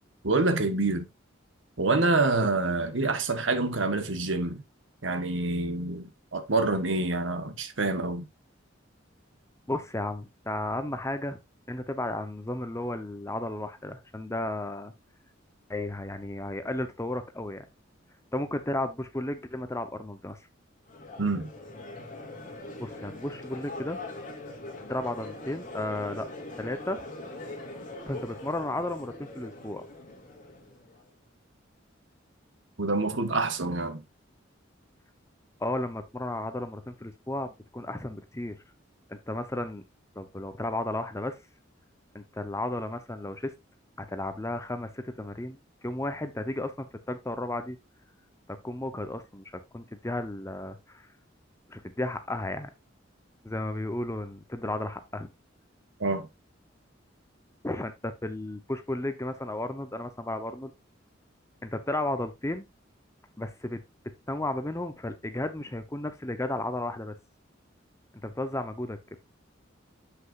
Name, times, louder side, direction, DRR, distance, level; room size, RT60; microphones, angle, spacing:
voice 1, 0.2-1.1 1.8-4.6 5.0-8.2 21.2-21.5 32.8-34.0 56.0-56.3, right 3 dB, 75° right, 1.4 m, -27 dB
voice 2, 9.7-11.4 11.7-14.9 15.7-17.7 18.3-20.4 22.8-24.0 24.9-26.3 26.6-27.0 28.1-29.8 35.6-38.6 39.1-39.8 40.2-41.4 42.1-43.5 44.0-45.6 45.8-47.8 48.5-51.1 51.7-52.7 53.4-55.3 57.6-60.7 61.6-62.7 63.4-63.8 64.3-67.2 68.2-69.0, left 1 dB, 15° left, 0.9 m, -33 dB
Crowd, 20.9-31.0, left 2 dB, 45° left, 2.4 m, -42 dB
7.9 x 6.4 x 2.5 m
head